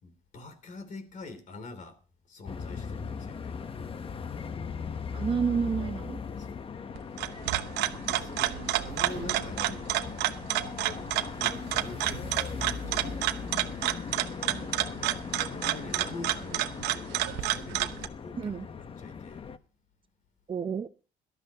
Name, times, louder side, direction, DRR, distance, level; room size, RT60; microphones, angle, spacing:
voice 1, 0.0-4.0 6.4-6.7 8.1-9.9 10.8-13.3 15.4-19.4, left 3 dB, 50° left, 3.1 m, -45 dB
sound 1, 2.5-19.6, left 6 dB, 35° left, 1.0 m, -39 dB
voice 2, 5.1-6.2 14.5-14.8 18.4-18.6 20.5-20.9, right 6 dB, 30° right, 0.7 m, -30 dB
sound 2, 7.0-18.1, right 14 dB, 85° right, 0.9 m, -30 dB
18.0 x 12.5 x 2.9 m
cardioid pair, 110°, 17 cm